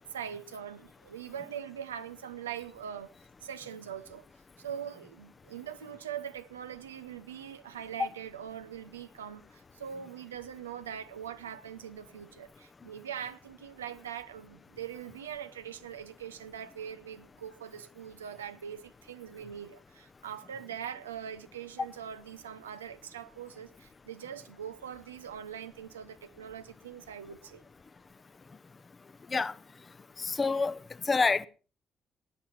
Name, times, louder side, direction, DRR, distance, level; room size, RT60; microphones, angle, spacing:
voice 1, 0.1-3.1 3.4-4.3 4.6-27.6, right 9 dB, 80° right, 0.6 m, -42 dB
voice 2, 30.2-30.8 31.1-31.5, left 4 dB, 35° left, 0.8 m, -27 dB
18.0 x 9.8 x 5.8 m
figure-of-eight pair, 40°, 0 cm